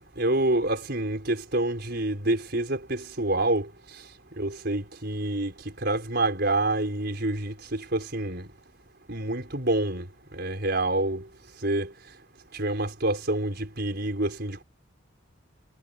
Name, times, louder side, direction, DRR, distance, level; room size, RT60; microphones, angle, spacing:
voice 1, 0.0-3.7 4.4-5.5 5.8-8.5 9.1-10.1 10.3-11.2 11.6-11.9 12.5-14.6, right 2 dB, 50° right, 5.5 m, -27 dB
head